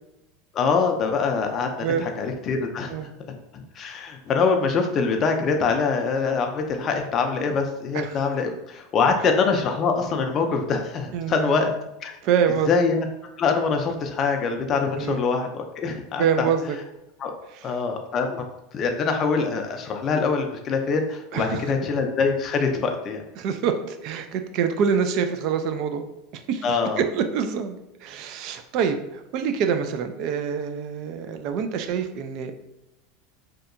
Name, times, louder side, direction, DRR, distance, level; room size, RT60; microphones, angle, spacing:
voice 1, 0.5-2.9 3.7-11.7 12.0-12.1 12.7-13.1 13.4-16.5 17.2-17.3 17.6-18.5 18.7-23.2 26.6-27.0, left 5 dB, 35° left, 4 dB, 0.4 m, -24 dB
voice 2, 11.1-11.6 12.2-12.7 15.0-15.2 16.2-16.8 17.5-17.7 21.3-21.6 23.4-26.0 26.3-32.5, right 7 dB, 55° right, 7 dB, 0.3 m, -26 dB
2.7 x 2.2 x 2.5 m, 0.89 s
supercardioid pair, 125°, 0 cm